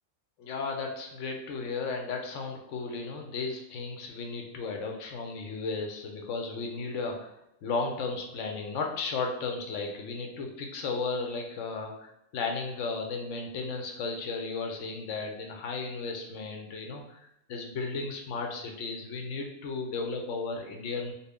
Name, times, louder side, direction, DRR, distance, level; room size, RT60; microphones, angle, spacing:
voice 1, 0.4-7.3 7.6-21.1, left 4 dB, 70° left, 2 dB, 0.9 m, -34 dB
2.6 x 2.3 x 3.4 m, 0.80 s
omnidirectional pair, 1.4 m